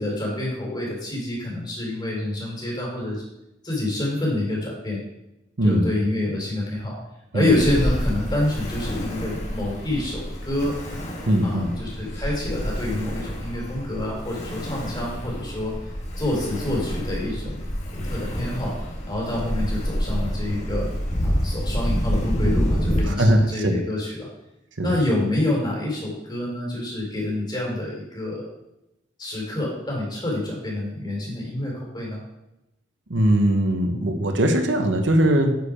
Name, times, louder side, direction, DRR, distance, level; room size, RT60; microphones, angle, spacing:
voice 1, 0.0-3.2 3.6-5.0 5.6-6.9 7.3-10.7 11.4-15.7 16.2-17.6 17.9-18.7 19.1-20.9 21.2-24.3 24.8-28.5 29.2-32.2, left 1 dB, 25° left, -2 dB, 3.0 m, -27 dB
Ocean, 7.5-23.0, equal, 40° left, 1.6 m, -28 dB
voice 2, 11.3-11.8 23.1-23.8 24.8-24.9 33.1-35.6, right 1 dB, 75° right, 5 dB, 1.0 m, -20 dB
9.2 x 5.0 x 5.0 m, 0.91 s
head